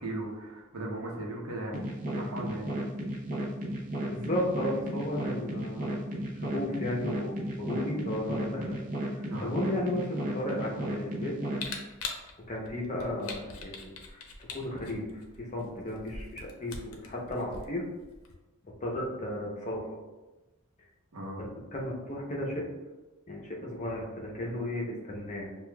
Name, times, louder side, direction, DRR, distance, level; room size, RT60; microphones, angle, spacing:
voice 1, 0.0-1.8 2.1-2.7 9.3-9.5 21.1-21.4, right 1 dB, 75° right, -2 dB, 0.9 m, -37 dB
sound 1, 1.7-11.7, right 1 dB, 40° right, 0.7 m, -34 dB
voice 2, 4.1-6.0 6.5-8.7 9.1-11.3 12.5-14.2 14.5-15.0 15.4-17.8 18.8-20.0 21.4-22.6 23.3-25.5, left 1 dB, 35° left, -2 dB, 0.7 m, -34 dB
Camera, 11.6-18.3, left 4 dB, 80° left, 0.6 m, -43 dB
6.5 x 2.4 x 2.3 m, 1.1 s
head